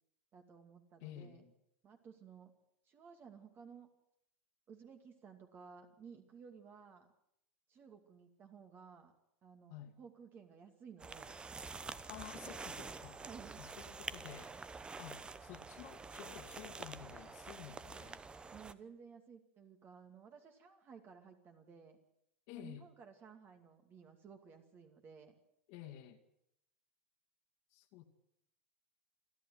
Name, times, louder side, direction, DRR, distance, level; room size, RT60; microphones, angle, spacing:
voice 1, 0.3-1.4 1.8-2.5 2.8-3.9 4.7-7.1 7.7-9.1 9.4-11.3 13.2-13.8 18.5-22.0 22.5-25.3, right 6 dB, 30° right, 2.5 m, -56 dB
voice 2, 1.0-1.5 9.7-9.9 12.1-13.2 13.6-14.5 15.0-18.2 22.5-22.8 25.7-26.2 27.7-28.0, left 12 dB, 55° left, 2.3 m, -52 dB
sound 1, 11.0-18.7, right 4 dB, 15° right, 0.9 m, -48 dB
28.0 x 11.0 x 9.4 m
hypercardioid pair, 120°, 7 cm